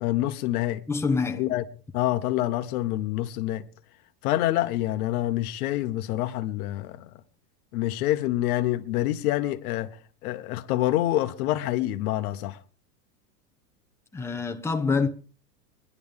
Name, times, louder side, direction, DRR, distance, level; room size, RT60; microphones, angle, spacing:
voice 1, 0.0-0.8 1.3-1.6 1.9-3.7 4.2-7.1 7.7-9.9 10.2-12.6, left 14 dB, 65° left, 1.2 m, -26 dB
voice 2, 0.9-1.4 14.1-15.1, left 4 dB, 5° left, 1.1 m, -25 dB
21.0 x 11.0 x 3.6 m
hypercardioid pair, 110°, 48 cm